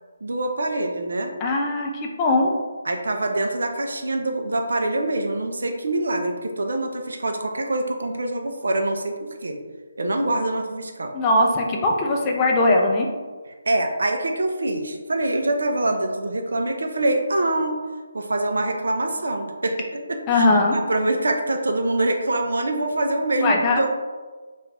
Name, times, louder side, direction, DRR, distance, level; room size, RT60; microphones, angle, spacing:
voice 1, 0.2-1.3 2.9-9.6 10.0-11.1 13.7-17.8 18.1-20.5 20.9-23.9, right 2 dB, 65° right, 4 dB, 0.4 m, -24 dB
voice 2, 1.4-2.5 11.1-13.1 20.3-20.8 23.4-23.9, left 2 dB, 20° left, 0 dB, 0.3 m, -20 dB
2.4 x 2.2 x 3.2 m, 1.4 s
figure-of-eight pair, 145°, 0 cm